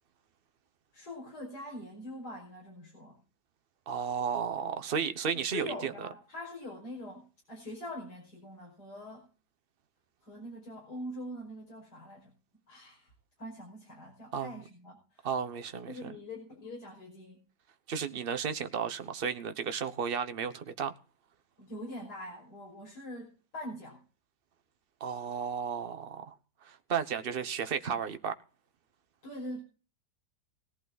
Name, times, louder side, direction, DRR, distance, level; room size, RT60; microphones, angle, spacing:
voice 1, 0.9-3.2 5.4-9.3 10.2-12.3 12.7-13.1 13.4-15.3 15.9-17.4 21.6-24.0 29.2-29.6, left 1 dB, 75° left, 6.2 m, -43 dB
voice 2, 3.9-6.1 14.3-14.5 15.2-16.1 17.9-20.9 25.0-26.3 26.6-28.3, right 7 dB, 40° right, 1.1 m, -33 dB
18.0 x 11.5 x 4.1 m
omnidirectional pair, 1.7 m